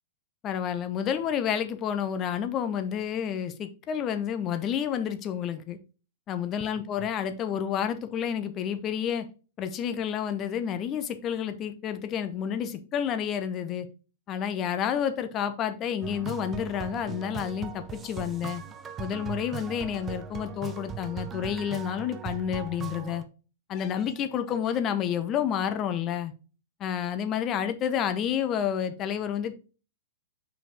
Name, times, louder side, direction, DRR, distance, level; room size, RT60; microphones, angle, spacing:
voice 1, 0.4-5.8 6.3-9.3 9.6-13.9 14.3-18.6 19.0-23.2 23.7-26.3 26.8-29.6, left 8 dB, 30° left, 0.8 m, -30 dB
sound 1, 16.0-23.2, right 8 dB, 20° right, 0.6 m, -39 dB
5.8 x 5.0 x 3.3 m
figure-of-eight pair, 100°, 0 cm